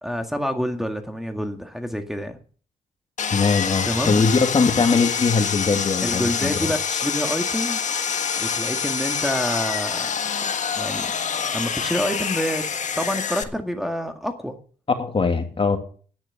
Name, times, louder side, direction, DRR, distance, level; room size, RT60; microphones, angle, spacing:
voice 1, 0.0-2.4 3.8-4.3 6.0-7.8 8.4-10.1 10.8-11.1 11.5-12.6 13.0-14.5, equal, ahead, 4 dB, 1.8 m, -27 dB
Sawing, 3.2-13.4, left 7 dB, 55° left, 1.5 m, -26 dB
voice 2, 3.3-6.7 15.0-15.8, left 4 dB, 35° left, 5 dB, 2.6 m, -21 dB
10.5 x 10.0 x 6.5 m, 0.43 s
cardioid pair, 70°, 15 cm